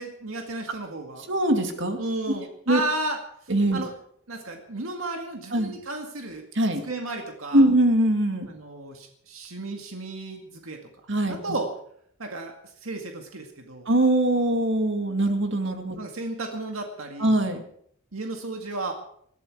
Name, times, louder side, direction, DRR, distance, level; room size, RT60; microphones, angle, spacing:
voice 1, 0.0-1.3 2.0-3.2 3.7-3.9 4.3-6.5 6.9-7.6 8.5-10.8 11.3-11.7 12.2-12.5 12.8-13.9 16.0-17.4 18.1-18.9, right 2 dB, 80° right, 3 dB, 2.0 m, -33 dB
voice 2, 1.3-2.0 2.7-2.8 3.5-3.8 5.5-5.7 6.5-6.8 7.5-8.5 11.1-11.6 13.9-16.0 17.2-17.6, right 1 dB, 60° right, 5 dB, 2.3 m, -22 dB
20.5 x 13.5 x 4.8 m, 0.66 s
head